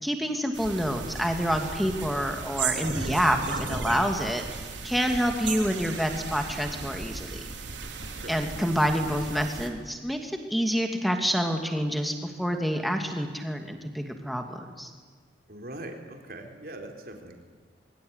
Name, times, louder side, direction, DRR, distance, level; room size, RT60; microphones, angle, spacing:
voice 1, 0.0-7.4 8.3-14.9, equal, ahead, 4 dB, 2.7 m, -28 dB
sound 1, 0.5-9.7, right 4 dB, 85° right, 3.7 m, -35 dB
voice 2, 15.5-17.4, right 1 dB, 55° right, 3 dB, 4.0 m, -41 dB
24.5 x 24.5 x 9.9 m, 1.5 s
head